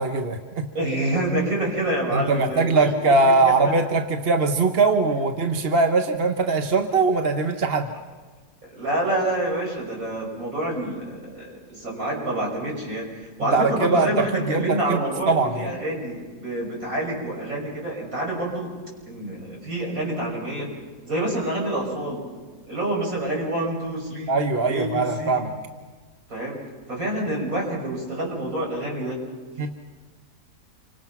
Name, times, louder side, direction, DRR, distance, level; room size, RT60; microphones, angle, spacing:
voice 1, 0.0-0.7 2.1-7.9 13.5-15.0 15.3-15.7 24.3-25.5 29.6-29.7, right 3 dB, 40° right, 6 dB, 1.2 m, -21 dB
voice 2, 0.7-2.9 3.3-3.5 8.6-18.7 19.1-20.7 21.0-22.2 22.7-24.3 24.6-25.4 26.3-26.6 26.9-29.2, right 1 dB, 55° right, -1 dB, 6.8 m, -27 dB
28.0 x 25.5 x 5.9 m, 1.4 s
omnidirectional pair, 1.7 m